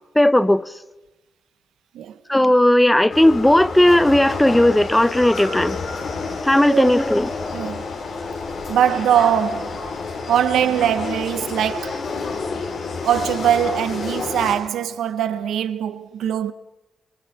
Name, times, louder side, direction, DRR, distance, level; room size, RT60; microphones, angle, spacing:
voice 1, 0.1-0.7 2.3-5.8 6.4-7.3, left 1 dB, 10° left, 0.8 m, -16 dB
sound 1, 3.1-14.5, left 4 dB, 75° left, 7.4 m, -29 dB
voice 2, 7.5-7.9 8.7-9.9 10.3-12.1 13.0-16.5, right 9 dB, 90° right, 1.1 m, -21 dB
30.0 x 24.0 x 5.8 m
cardioid pair, 80°, 0 cm